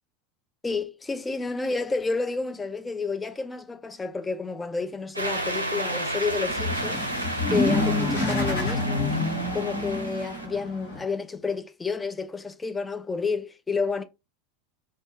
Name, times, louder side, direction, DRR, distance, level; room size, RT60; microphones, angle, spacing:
voice 1, 0.6-7.0 7.5-9.2 9.5-14.0, left 4 dB, 15° left, 0.4 m, -30 dB
sound 1, 5.1-10.5, right 1 dB, 90° right, 0.5 m, -32 dB
sound 2, 6.3-11.0, left 2 dB, 75° left, 1.2 m, -27 dB
2.6 x 2.2 x 2.6 m
figure-of-eight pair, 80°, 0 cm